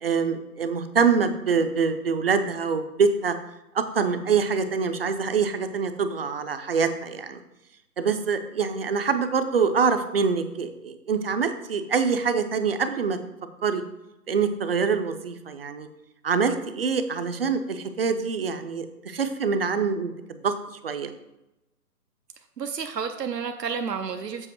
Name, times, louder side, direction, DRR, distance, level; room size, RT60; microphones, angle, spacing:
voice 1, 0.0-3.3 3.7-7.4 8.0-13.2 13.6-13.8 14.3-15.9 16.2-20.1 20.4-20.5 20.8-21.1, right 5 dB, 40° right, 9 dB, 0.6 m, -25 dB
voice 2, 22.6-24.5, right 6 dB, 85° right, 6 dB, 0.8 m, -30 dB
7.7 x 5.0 x 4.5 m, 0.96 s
figure-of-eight pair, 140°, 48 cm